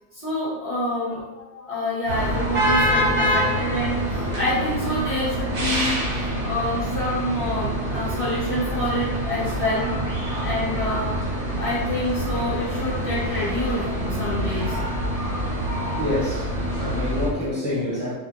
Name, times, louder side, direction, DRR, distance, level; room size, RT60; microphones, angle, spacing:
voice 1, 0.1-9.9 10.4-11.2 11.6-14.8, left 1 dB, 30° left, -10 dB, 1.1 m, -27 dB
sound 1, 2.1-17.3, equal, 55° right, 0.9 m, -26 dB
voice 2, 15.9-16.5 16.8-18.1, left 1 dB, 30° right, -9 dB, 1.2 m, -26 dB
2.6 x 2.5 x 2.5 m, 1.1 s
omnidirectional pair, 1.2 m